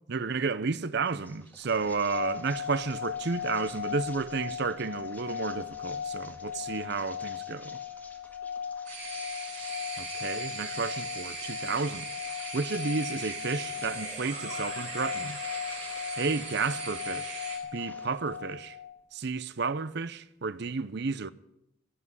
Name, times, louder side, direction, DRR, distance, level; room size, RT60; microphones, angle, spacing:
voice 1, 0.1-7.8 10.0-12.1 12.5-15.4 16.2-17.4 17.7-18.8 19.1-21.3, right 4 dB, 55° right, 0.6 m, -32 dB
sound 1, 1.1-16.8 17.2-18.5, left 2 dB, 10° left, 1.8 m, -53 dB
sound 2, 1.8-19.0, left 8 dB, 80° left, 1.3 m, -38 dB
sound 3, 8.9-17.6, right 3 dB, 35° right, 5.2 m, -39 dB
16.5 x 8.4 x 9.6 m
head